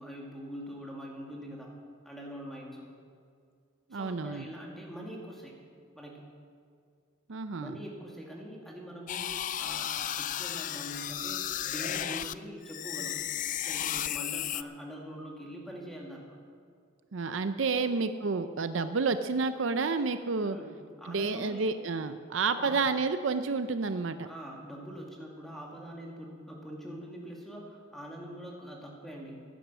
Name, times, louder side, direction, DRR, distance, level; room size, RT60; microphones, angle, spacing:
voice 1, 0.0-1.7 2.0-2.9 3.9-5.6 6.0-6.2 7.6-13.2 13.5-16.2 17.7-17.9 20.4-21.7 22.5-22.8 24.2-29.4, equal, ahead, -2 dB, 2.2 m, -43 dB
voice 2, 3.9-4.5 7.3-7.8 17.1-20.6 21.1-24.2, right 4 dB, 65° right, 10 dB, 0.5 m, -30 dB
sound 1, 9.1-12.3 12.7-14.6, left 11 dB, 40° left, 0.3 m, -34 dB
15.5 x 10.5 x 6.2 m, 2.2 s
head